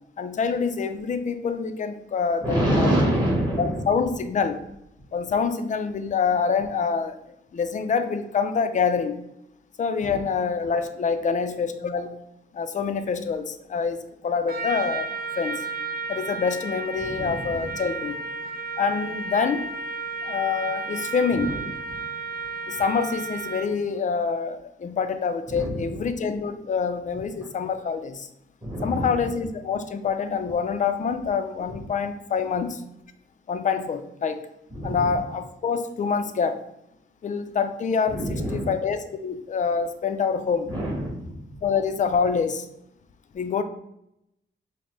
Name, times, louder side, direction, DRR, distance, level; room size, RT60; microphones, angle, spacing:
voice 1, 0.2-3.0 3.6-4.6 5.1-7.2 7.5-9.2 9.8-12.1 12.5-14.0 14.2-15.1 15.4-15.7 16.1-18.2 18.8-19.6 20.2-21.6 22.7-28.3 28.8-32.8 33.5-34.4 34.8-36.6 37.2-40.7 41.6-42.7 43.3-43.6, left 5 dB, 40° left, 9 dB, 0.4 m, -26 dB
voice 2, 2.4-3.9 10.0-10.2 17.0-17.6 21.3-21.6 21.9-22.0 25.5-26.0 28.6-29.2 31.7-31.8 34.7-35.1 38.1-38.7 40.6-41.4, right 1 dB, 20° right, -4 dB, 1.5 m, -27 dB
Trumpet, 14.5-23.8, right 4 dB, 50° right, 0.5 m, -33 dB
5.2 x 2.1 x 3.2 m, 0.80 s
cardioid pair, 105°, 20 cm